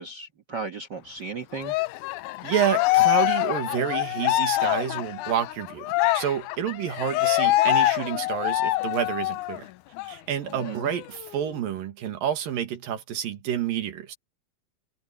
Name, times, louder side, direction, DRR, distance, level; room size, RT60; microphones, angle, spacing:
voice 1, 0.0-1.7 10.5-10.9, right 5 dB, 60° right, 1.1 m, -35 dB
Cheering, 1.6-9.6 10.0-10.1 10.5-11.5, left 17 dB, 80° left, 1.9 m, -25 dB
voice 2, 2.4-9.7 10.0-14.2, right 9 dB, 85° right, 3.6 m, -29 dB
omnidirectional pair, 4.0 m